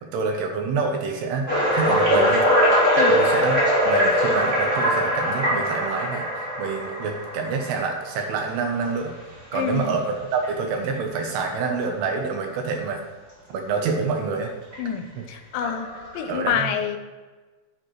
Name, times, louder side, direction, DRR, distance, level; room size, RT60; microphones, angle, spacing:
voice 1, 0.0-1.5 1.7-2.5 3.1-6.3 6.6-9.1 9.5-13.0 13.5-14.5 16.3-16.7, right 4 dB, 75° right, 3 dB, 2.9 m, -27 dB
sound 1, 1.5-8.3 9.0-9.2 9.7-9.8 10.4-10.5 11.8-11.9 14.7-14.8 15.6-16.3, equal, 25° right, 3.4 m, -22 dB
voice 2, 3.0-3.3 9.5-10.0 14.8-17.0, left 8 dB, 85° left, 7 dB, 3.0 m, -27 dB
11.0 x 10.5 x 3.2 m, 1.3 s
omnidirectional pair, 5.3 m